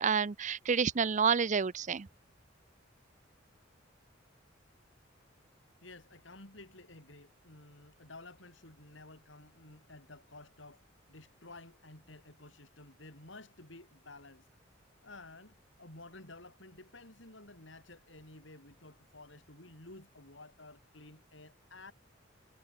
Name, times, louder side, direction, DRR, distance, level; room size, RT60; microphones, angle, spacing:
voice 1, 0.0-2.1, right 6 dB, 40° right, 0.5 m, -29 dB
voice 2, 5.8-14.5 15.0-21.9, left 2 dB, 70° left, 5.4 m, -53 dB
head